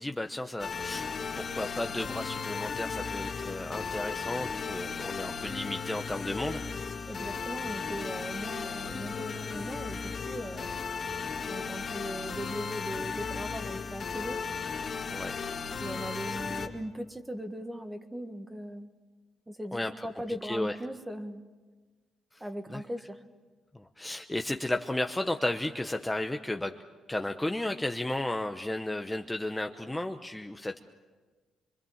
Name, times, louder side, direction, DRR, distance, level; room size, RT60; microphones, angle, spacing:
voice 1, 0.0-6.7 15.1-15.4 16.1-16.4 19.7-20.1 20.4-20.8 22.3-22.4 22.7-22.8 23.7-26.7 27.1-30.8, left 1 dB, 10° left, 5 dB, 0.9 m, -34 dB
sound 1, 0.6-16.7, left 5 dB, 40° left, 2.8 m, -36 dB
voice 2, 7.1-10.7 11.5-14.4 15.8-18.9 19.5-21.4 22.4-23.2, equal, 15° right, 8 dB, 1.7 m, -39 dB
25.0 x 23.5 x 7.3 m, 1.4 s
cardioid pair, 90°, 0 cm